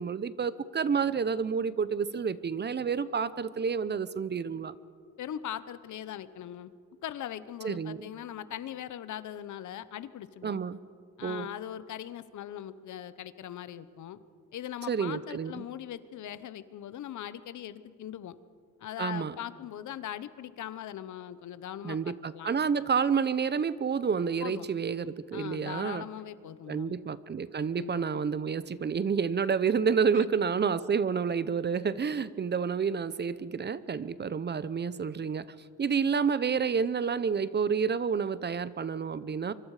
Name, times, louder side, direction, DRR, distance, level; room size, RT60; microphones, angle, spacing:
voice 1, 0.0-4.8 7.6-8.1 10.4-10.8 11.2-11.5 14.9-15.6 19.0-19.3 21.8-26.1 26.7-39.5, right 6 dB, 35° right, 16 dB, 0.8 m, -29 dB
voice 2, 5.2-6.7 7.0-10.6 11.2-14.2 14.5-18.3 18.8-22.5 24.4-24.7 25.3-27.0 27.8-28.0 30.2-30.3, left 11 dB, 65° left, 14 dB, 1.1 m, -40 dB
25.0 x 24.5 x 5.0 m, 2.2 s
cardioid pair, 100°, 31 cm